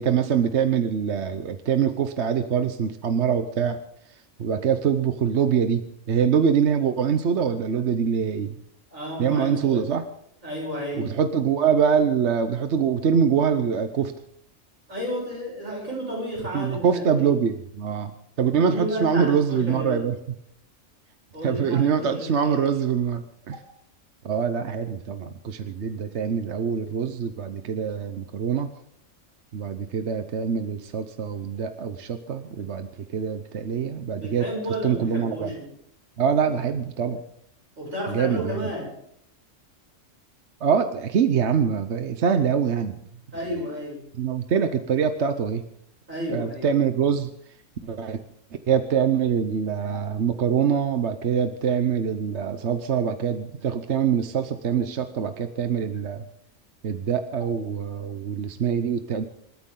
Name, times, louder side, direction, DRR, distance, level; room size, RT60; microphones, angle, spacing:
voice 1, 0.0-3.8 4.4-8.6 9.2-10.0 11.0-14.1 16.5-18.1 18.4-20.2 21.4-23.6 24.2-28.7 29.5-34.5 34.8-35.5 36.2-37.2 38.1-38.7 40.6-43.0 44.2-45.6 46.3-47.3 47.8-48.2 48.7-56.2 56.8-59.2, right 7 dB, 60° right, 8 dB, 1.1 m, -24 dB
voice 2, 8.9-9.9 10.4-11.1 14.9-17.3 18.6-20.1 21.3-22.8 34.1-35.7 37.8-38.9 43.3-44.0 46.1-46.7 49.9-50.0, equal, 85° right, -3 dB, 8.1 m, -32 dB
27.0 x 13.0 x 3.8 m, 0.74 s
omnidirectional pair, 1.3 m